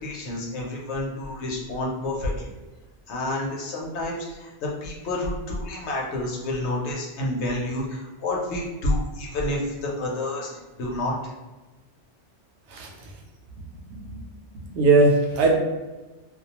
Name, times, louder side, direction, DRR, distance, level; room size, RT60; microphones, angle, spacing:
voice 1, 0.0-2.5 3.1-10.5 10.8-11.3, left 1 dB, 75° left, -2 dB, 0.9 m, -29 dB
voice 2, 14.7-15.6, right 3 dB, 80° right, 0 dB, 0.9 m, -19 dB
2.3 x 2.2 x 2.8 m, 1.2 s
omnidirectional pair, 1.2 m